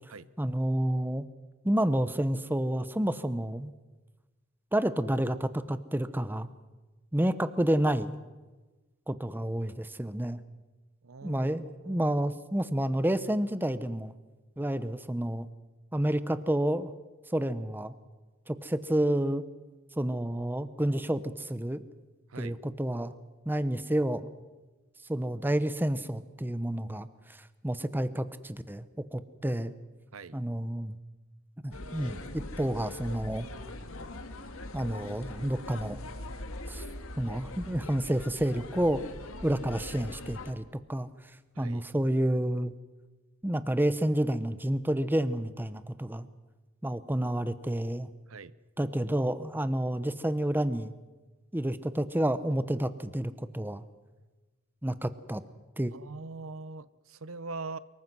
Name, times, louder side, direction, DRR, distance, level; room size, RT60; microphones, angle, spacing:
voice 1, 0.4-1.3 1.6-3.7 4.7-6.5 7.1-8.2 9.1-10.4 11.2-14.1 14.6-15.5 15.9-16.9 17.3-17.9 18.5-19.4 20.0-21.8 22.3-23.1 23.5-24.3 25.1-29.7 30.3-31.0 31.6-33.5 34.7-36.0 36.7-36.8 37.2-39.0 39.4-41.1 41.6-42.7 43.4-46.3 46.8-48.1 48.8-50.9 51.5-53.8 54.8-55.4 55.8-55.9, right 1 dB, 10° right, 13 dB, 0.9 m, -29 dB
voice 2, 11.0-11.5 11.8-12.1 22.3-22.6 30.1-30.4 41.5-41.8 48.3-48.5 55.9-57.8, right 3 dB, 75° right, 17 dB, 0.8 m, -42 dB
sound 1, 31.7-40.5, left 2 dB, 80° left, 1.9 m, -42 dB
24.5 x 22.5 x 6.2 m, 1.2 s
head